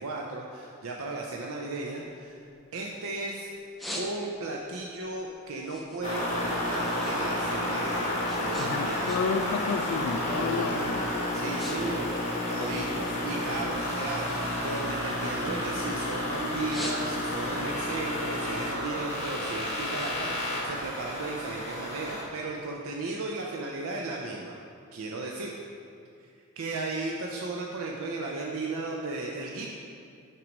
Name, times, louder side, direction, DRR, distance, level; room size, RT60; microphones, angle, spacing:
voice 1, 0.0-2.4 2.7-3.5 4.0-9.3 11.3-12.1 12.5-24.5 24.9-25.5 26.2-26.3 26.6-29.7, right 3 dB, 70° right, -1 dB, 0.5 m, -35 dB
sound 1, 2.5-3.2 3.5-4.6 5.0-7.2 7.5-9.5 9.8-10.2 10.8-10.9 11.2-11.8 12.0-13.3 13.7-16.1 16.5-17.5 17.9-21.0, equal, ahead, 0.5 m, -43 dB
sound 2, 6.0-22.2, left 1 dB, 30° left, 1.4 m, -31 dB
voice 2, 8.6-11.1, left 5 dB, 70° left, 7 dB, 0.3 m, -31 dB
sound 3, 10.2-13.0 13.4-14.8 15.3-16.4 17.5-19.3, equal, 25° right, 1.0 m, -45 dB
5.9 x 4.6 x 5.2 m, 2.4 s
head